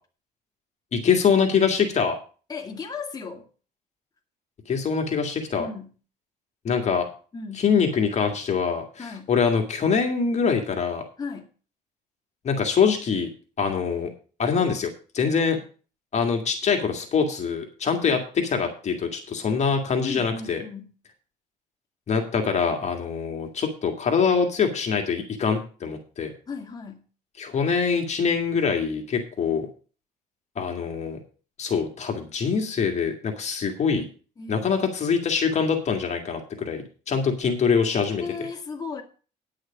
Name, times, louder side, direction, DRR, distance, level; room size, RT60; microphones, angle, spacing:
voice 1, 0.9-2.2 4.7-5.7 6.6-7.1 7.5-11.0 12.4-13.3 13.6-14.1 14.4-15.6 16.1-20.6 22.1-26.3 27.4-29.7 30.6-31.2 31.6-34.1 34.5-38.2, left 6 dB, 40° left, 3 dB, 2.0 m, -24 dB
voice 2, 2.5-3.5 5.6-5.9 7.3-7.6 9.0-9.3 11.2-11.5 20.0-20.9 26.5-27.1 34.4-34.7 38.2-39.0, left 5 dB, 25° left, 1 dB, 2.1 m, -35 dB
10.0 x 6.4 x 6.9 m, 0.37 s
cardioid pair, 110°, 17 cm